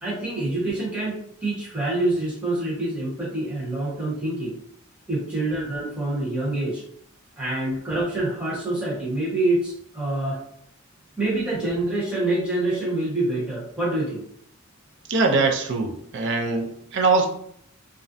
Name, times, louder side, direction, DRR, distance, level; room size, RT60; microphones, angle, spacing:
voice 1, 0.0-4.6 5.1-6.8 7.4-10.4 11.2-14.2, right 2 dB, 5° right, -7 dB, 0.8 m, -26 dB
voice 2, 15.1-17.3, right 3 dB, 55° right, 2 dB, 0.4 m, -22 dB
2.4 x 2.1 x 2.5 m, 0.68 s
head